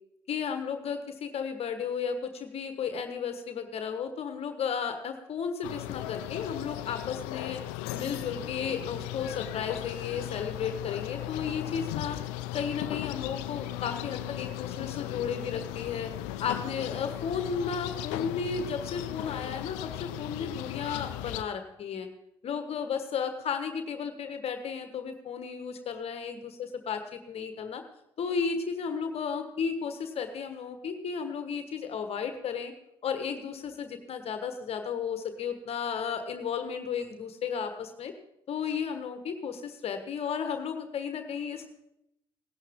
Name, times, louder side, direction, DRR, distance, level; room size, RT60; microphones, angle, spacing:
voice 1, 0.3-7.6 7.9-12.2 12.5-16.1 16.4-22.1 22.4-27.8 28.2-32.7 33.0-38.1 38.5-41.7, left 6 dB, 55° left, 7 dB, 1.4 m, -34 dB
sound 1, 5.6-21.4, left 14 dB, 80° left, 0.6 m, -37 dB
17.0 x 12.0 x 3.7 m, 0.81 s
hypercardioid pair, 55°, 12 cm